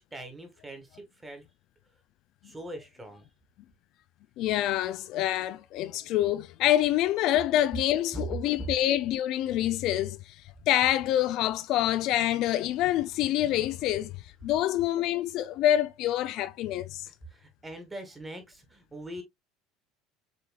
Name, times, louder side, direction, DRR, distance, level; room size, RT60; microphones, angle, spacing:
voice 1, 0.0-1.5 2.4-3.3 8.1-8.2 8.6-8.7 17.3-19.2, right 1 dB, 15° right, 1.7 m, -41 dB
voice 2, 4.4-14.2 14.4-17.1, left 13 dB, 60° left, 0.3 m, -26 dB
6.9 x 3.0 x 2.3 m
supercardioid pair, 105°, 0 cm